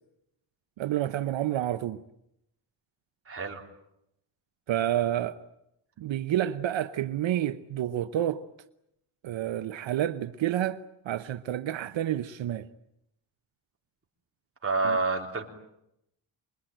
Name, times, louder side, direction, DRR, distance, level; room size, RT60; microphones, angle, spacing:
voice 1, 0.8-2.0 4.7-5.4 6.0-8.4 9.2-12.7 14.8-15.0, right 12 dB, 75° right, 0.9 m, -29 dB
voice 2, 3.3-3.6 14.6-15.5, right 3 dB, 30° right, 3.8 m, -28 dB
26.0 x 22.0 x 9.1 m
wide cardioid pair, 135°, 46 cm